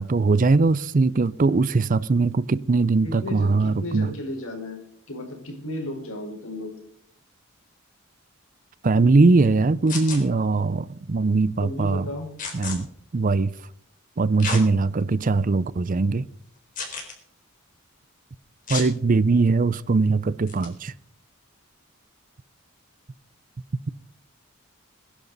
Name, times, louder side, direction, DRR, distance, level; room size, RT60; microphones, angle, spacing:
voice 1, 0.0-4.1 8.8-12.0 12.5-12.9 13.1-13.5 14.2-16.3 18.7-20.9, right 3 dB, 40° right, 0.5 m, -21 dB
voice 2, 3.0-4.8 5.1-6.7 11.6-12.3, left 1 dB, 80° left, 4.4 m, -34 dB
sound 1, 9.9-10.2 12.4-12.8 14.4-14.6 15.2-15.3 16.7-17.1 18.7-18.9 20.5-20.7, left 4 dB, 40° left, 4.0 m, -31 dB
21.5 x 11.0 x 4.0 m
head